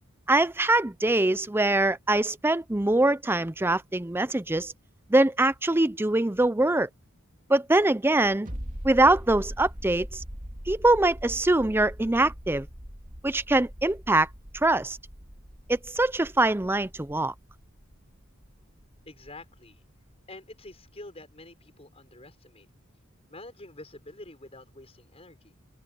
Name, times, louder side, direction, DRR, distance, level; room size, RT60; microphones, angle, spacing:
voice 1, 0.3-4.7 5.1-6.9 7.5-8.5 8.8-10.2 10.7-12.7 13.2-14.3 14.5-15.0 15.7-17.3, right 2 dB, 10° right, 0.5 m, -23 dB
sound 1, 8.5-19.8 20.1-20.2, equal, 40° right, 3.5 m, -42 dB
voice 2, 19.1-19.8 20.3-22.7 23.3-25.5, left 2 dB, 30° left, 6.3 m, -47 dB
open air
head